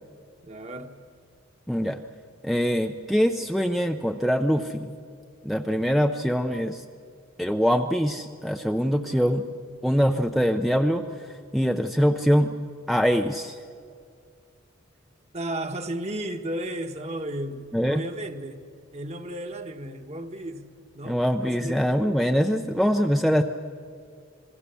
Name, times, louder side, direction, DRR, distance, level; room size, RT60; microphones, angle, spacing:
voice 1, 0.4-1.0 9.0-9.4 15.3-21.9, right 1 dB, 35° right, 6 dB, 1.4 m, -34 dB
voice 2, 1.7-2.0 2.4-5.0 5.4-6.8 7.4-9.5 9.8-12.5 12.9-13.6 17.7-18.0 21.0-23.4, equal, ahead, 5 dB, 0.6 m, -23 dB
27.0 x 21.0 x 6.9 m, 2.2 s
head